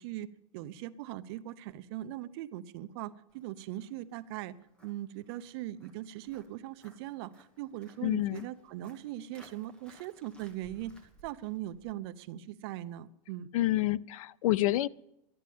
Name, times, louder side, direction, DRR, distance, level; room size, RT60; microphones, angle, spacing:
voice 1, 0.0-4.6 4.8-10.9 11.2-13.5, right 14 dB, 45° right, 13 dB, 0.6 m, -40 dB
Walk footsteps, 3.3-11.9, right 2 dB, 5° left, 1.3 m, -61 dB
voice 2, 8.0-8.4 13.5-14.9, left 16 dB, 70° left, 23 dB, 0.4 m, -28 dB
12.5 x 11.0 x 8.4 m, 0.84 s
supercardioid pair, 170°, 19 cm